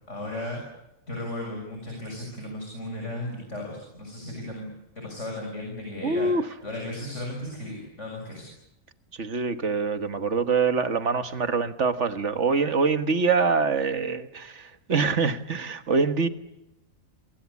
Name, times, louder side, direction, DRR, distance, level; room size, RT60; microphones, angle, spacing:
voice 1, 0.1-0.6 1.1-4.7 5.0-6.3 6.6-8.5, left 1 dB, 55° left, 0 dB, 7.3 m, -35 dB
voice 2, 6.0-6.5 9.2-16.3, right 4 dB, 60° right, 9 dB, 1.7 m, -24 dB
27.0 x 25.0 x 8.5 m, 0.92 s
omnidirectional pair, 1.4 m